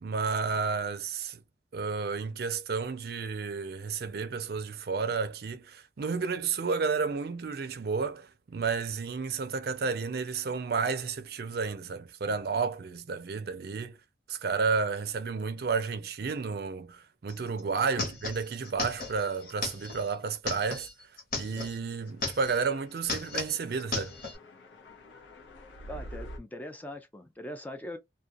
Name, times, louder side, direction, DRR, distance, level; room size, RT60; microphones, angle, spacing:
voice 1, 0.0-1.4 1.7-14.0 14.3-20.9 21.3-24.1, right 5 dB, 60° right, 0.5 m, -31 dB
sound 1, 17.3-17.4 17.6-21.8 22.1-22.7 23.0-24.4, left 3 dB, 55° left, 1.1 m, -36 dB
sound 2, 21.9-26.4, equal, 90° left, 0.6 m, -48 dB
voice 2, 25.9-28.0, left 1 dB, 10° left, 0.3 m, -41 dB
2.3 x 2.2 x 2.6 m
head